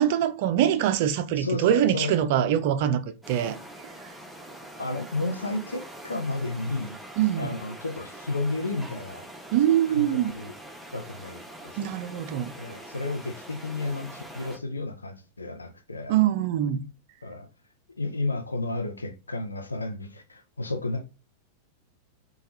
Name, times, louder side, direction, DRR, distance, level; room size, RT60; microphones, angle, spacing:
voice 1, 0.0-3.6 7.2-7.5 9.5-10.3 11.8-12.5 16.1-16.9, right 10 dB, 50° right, 0.3 m, -24 dB
voice 2, 1.3-2.2 4.8-7.0 7.4-9.2 9.9-10.1 10.3-10.5 10.9-11.9 12.6-16.2 17.2-17.5 17.9-21.2, left 2 dB, 80° left, 0.5 m, -32 dB
sound 1, 3.2-14.6, right 1 dB, ahead, 0.8 m, -44 dB
3.3 x 2.2 x 2.8 m
figure-of-eight pair, 90°, 0 cm